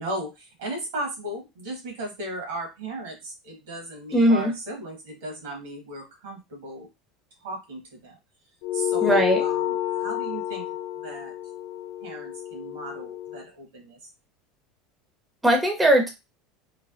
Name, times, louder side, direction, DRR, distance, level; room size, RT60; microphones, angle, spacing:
voice 1, 0.0-6.9 7.4-8.2 8.7-10.7 10.9-11.3 12.0-14.1, right 1 dB, 75° right, 1 dB, 1.4 m, -36 dB
voice 2, 4.1-4.5 9.0-9.4 15.4-16.1, right 1 dB, 10° right, 3 dB, 0.8 m, -19 dB
sound 1, 8.6-13.4, left 12 dB, 70° left, 0.6 m, -29 dB
3.2 x 2.1 x 2.5 m, 0.24 s
hypercardioid pair, 80°, 0 cm